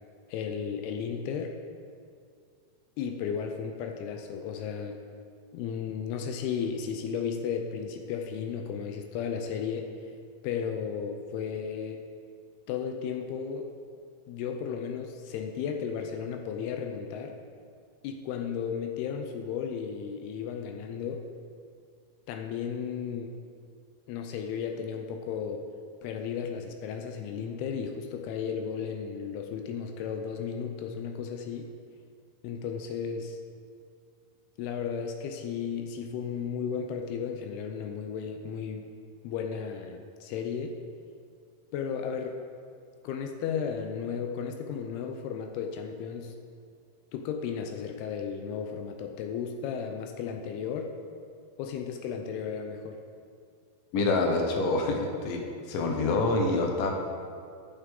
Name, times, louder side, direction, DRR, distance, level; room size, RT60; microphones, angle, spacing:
voice 1, 0.3-1.6 3.0-5.0 5.5-9.9 10.4-12.0 12.7-13.7 14.3-17.4 18.0-21.2 22.3-23.3 24.1-25.6 26.0-31.7 32.4-33.4 34.6-38.9 39.2-40.8 41.7-42.4 43.0-46.3 47.1-50.9 51.6-53.0, left 7 dB, 85° left, 4 dB, 2.6 m, -34 dB
voice 2, 53.9-55.4 55.7-56.9, left 3 dB, 70° left, 1 dB, 2.4 m, -26 dB
12.5 x 6.7 x 3.8 m, 2.2 s
omnidirectional pair, 4.5 m